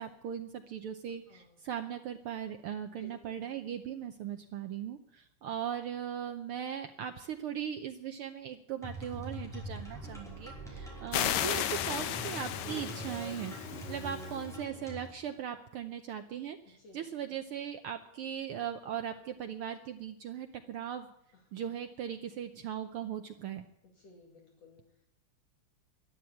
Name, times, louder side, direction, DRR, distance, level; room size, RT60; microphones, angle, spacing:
voice 1, 0.0-13.5 13.9-21.1 21.5-23.7, right 9 dB, 85° right, 7 dB, 1.2 m, -39 dB
voice 2, 1.3-1.6 2.9-3.4 10.0-10.3 16.8-17.1 21.3-21.7 24.0-25.1, left 1 dB, 60° left, 0 dB, 3.6 m, -57 dB
sound 1, 8.8-15.1, equal, ahead, 4.8 m, -43 dB
sound 2, 11.1-14.4, left 11 dB, 75° left, 2.1 m, -34 dB
12.5 x 11.5 x 8.5 m, 0.77 s
omnidirectional pair, 3.4 m